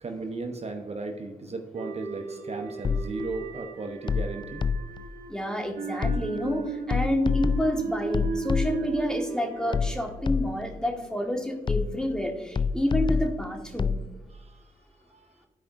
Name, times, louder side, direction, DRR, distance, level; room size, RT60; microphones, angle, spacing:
voice 1, 0.0-4.6 14.3-14.6 15.1-15.3, right 3 dB, 40° right, 4 dB, 0.9 m, -36 dB
sound 1, 1.7-11.0, right 5 dB, 60° right, 1.2 m, -36 dB
sound 2, 2.8-3.4 4.1-5.1 6.0-6.5 6.9-9.0 9.7-10.8 11.7-12.2 12.6-14.1, left 5 dB, 30° left, 0.3 m, -28 dB
voice 2, 5.3-13.9, left 1 dB, 5° left, 2 dB, 1.6 m, -29 dB
12.0 x 4.9 x 2.6 m, 1.1 s
supercardioid pair, 45°, 16 cm